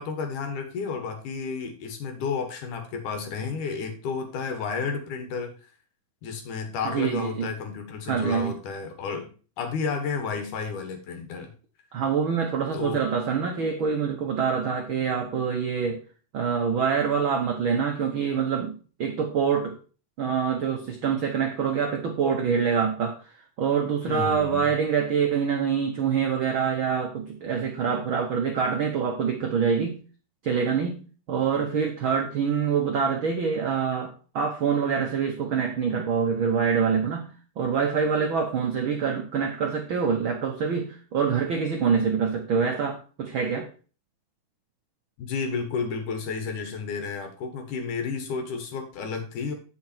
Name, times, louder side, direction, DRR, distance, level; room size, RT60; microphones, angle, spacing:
voice 1, 0.0-5.6 6.2-9.3 9.6-11.5 12.7-13.0 24.1-24.7 45.2-49.5, left 5 dB, 65° left, 6 dB, 2.9 m, -31 dB
voice 2, 6.9-7.5 8.1-8.5 11.9-16.0 16.3-19.7 20.2-23.2 23.6-30.0 30.4-31.0 31.3-43.7, right 6 dB, 85° right, 2 dB, 1.1 m, -25 dB
8.6 x 6.3 x 4.4 m, 0.37 s
omnidirectional pair, 3.9 m